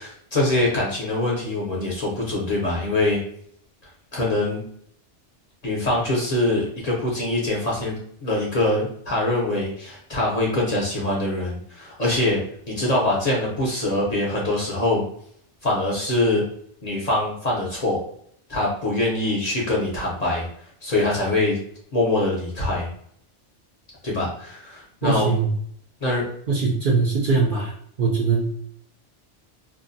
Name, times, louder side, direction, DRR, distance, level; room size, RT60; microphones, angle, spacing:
voice 1, 0.0-3.2 4.1-4.6 5.6-7.9 8.2-12.4 12.7-15.0 15.6-16.5 16.8-18.0 18.5-20.4 20.8-21.6 21.9-22.9 24.0-25.4 26.0-26.2, left 2 dB, 40° left, -4 dB, 0.7 m, -23 dB
voice 2, 25.0-25.5 26.5-27.7 28.0-28.6, right 4 dB, 55° right, -3 dB, 0.6 m, -21 dB
2.7 x 2.1 x 2.5 m, 0.65 s
omnidirectional pair, 1.2 m